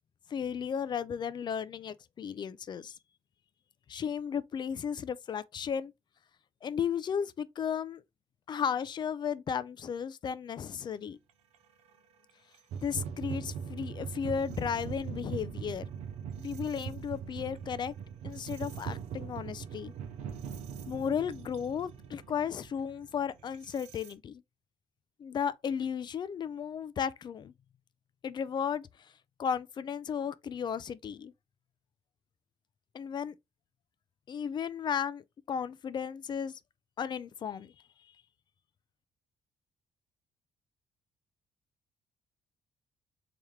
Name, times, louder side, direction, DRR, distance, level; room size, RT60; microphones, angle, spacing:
voice 1, 0.3-3.0 3.9-5.9 6.6-8.0 8.5-11.2 12.8-15.8 16.4-17.9 18.2-19.9 20.9-24.4 25.2-27.5 28.2-28.9 29.4-31.3 32.9-33.3 34.3-35.2 35.5-36.6 37.0-37.7, left 7 dB, 40° left, 0.4 m, -34 dB
sound 1, 11.5-11.6 12.5-24.1, right 7 dB, 90° right, 0.7 m, -41 dB
3.5 x 2.9 x 3.1 m
cardioid pair, 115°, 11 cm